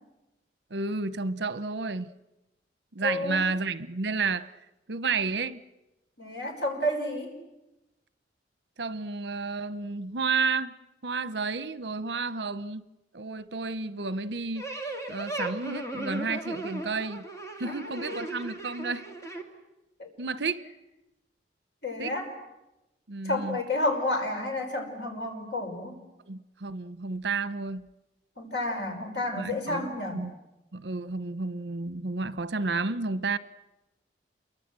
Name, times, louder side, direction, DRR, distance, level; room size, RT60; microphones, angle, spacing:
voice 1, 0.7-2.1 2.9-4.5 4.9-5.6 8.8-10.7 11.0-12.8 13.1-14.6 15.1-17.3 17.6-19.1 20.2-20.6 22.0-22.2 23.1-23.6 26.3-27.8 29.4-30.3 30.7-33.4, right 4 dB, 70° right, 0.9 m, -31 dB
voice 2, 3.0-3.4 6.2-7.3 17.6-18.3 20.0-20.1 21.8-22.3 23.3-26.0 28.4-30.2, left 1 dB, 75° left, 5.2 m, -31 dB
sound 1, 14.6-19.4, right 2 dB, 15° left, 2.4 m, -36 dB
28.0 x 23.5 x 7.6 m
head